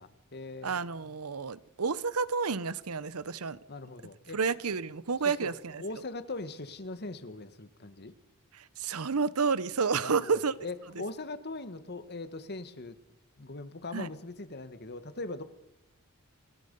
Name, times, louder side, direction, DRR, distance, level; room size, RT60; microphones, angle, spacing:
voice 1, 0.0-0.7 3.7-4.4 5.4-5.5 5.8-8.1 10.0-12.9 13.4-15.4, left 2 dB, 50° left, 1.6 m, -40 dB
voice 2, 0.6-3.6 4.3-5.8 8.5-10.5 13.9-14.1, right 5 dB, 85° right, 0.9 m, -30 dB
28.0 x 20.0 x 5.5 m
head